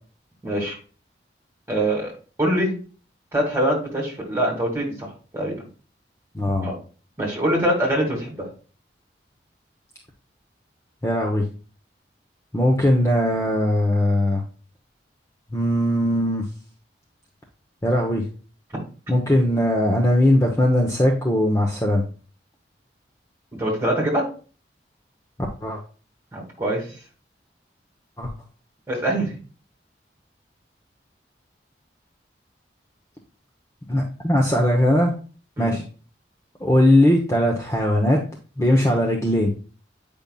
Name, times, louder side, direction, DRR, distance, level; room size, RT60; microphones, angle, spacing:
voice 1, 0.4-0.8 1.7-2.1 2.4-2.7 3.3-5.5 6.6-6.8 7.2-8.5 23.6-24.3 26.3-26.9 28.9-29.3 35.6-35.8, right 1 dB, 15° right, -2 dB, 2.3 m, -23 dB
voice 2, 6.3-6.7 11.0-11.5 12.5-14.4 15.5-16.4 17.8-18.2 19.1-22.0 25.6-25.8 28.2-28.3 33.9-35.1 35.6-35.8 36.6-38.2 38.6-39.5, left 1 dB, 15° left, 0 dB, 0.8 m, -19 dB
8.7 x 5.3 x 2.3 m, 0.38 s
head